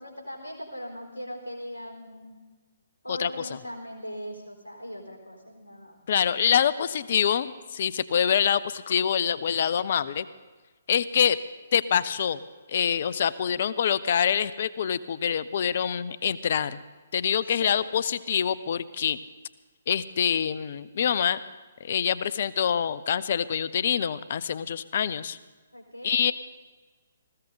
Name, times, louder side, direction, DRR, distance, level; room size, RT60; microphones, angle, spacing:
voice 1, 0.0-2.4 3.0-6.0 17.6-17.9 25.7-26.2, equal, 80° left, 2 dB, 4.3 m, -39 dB
voice 2, 3.1-3.5 6.1-10.3 10.9-11.4 11.7-12.4 12.7-16.8 17.1-19.2 19.9-21.4 21.8-25.4 26.0-26.3, left 8 dB, 50° left, 18 dB, 0.6 m, -25 dB
19.5 x 15.5 x 4.0 m, 1.3 s
figure-of-eight pair, 130°, 0 cm